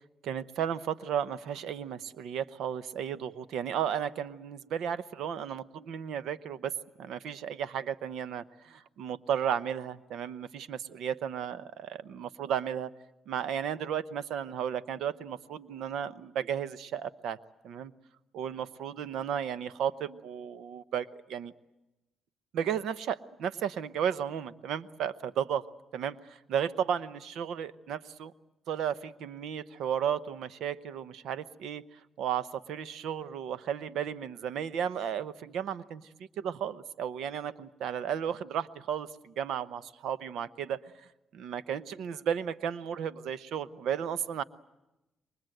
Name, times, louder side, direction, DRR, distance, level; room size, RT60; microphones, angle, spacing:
voice 1, 0.2-6.7 7.0-12.9 13.3-17.4 17.6-17.9 18.3-21.5 22.5-25.6 25.9-28.3 28.7-31.8 32.2-36.0 36.4-40.8 41.3-44.4, right 8 dB, 80° right, 15 dB, 0.8 m, -34 dB
28.5 x 23.5 x 7.9 m, 0.97 s
cardioid pair, 90°, 0 cm